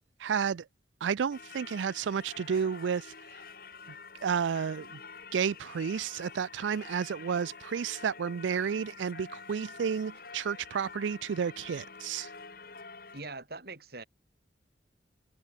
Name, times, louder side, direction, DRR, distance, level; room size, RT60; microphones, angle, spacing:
voice 1, 0.2-0.6 1.0-3.1 4.2-5.0 5.3-12.3, right 7 dB, 85° right, 0.4 m, -31 dB
Singing / Church bell, 1.3-13.2, left 5 dB, 50° left, 2.9 m, -48 dB
voice 2, 13.1-14.0, right 3 dB, 55° right, 4.2 m, -42 dB
head